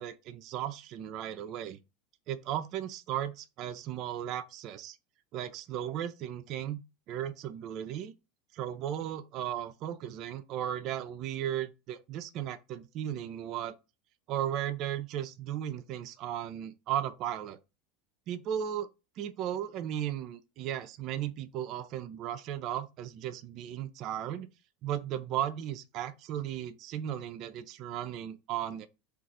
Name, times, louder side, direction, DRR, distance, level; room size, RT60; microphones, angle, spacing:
voice 1, 0.0-1.8 2.3-5.0 5.3-6.8 7.1-8.1 8.5-13.8 14.3-17.6 18.3-18.9 19.2-24.5 24.8-28.9, right 11 dB, 50° right, 0.4 m, -36 dB
2.4 x 2.4 x 4.0 m
hypercardioid pair, 100°, 0 cm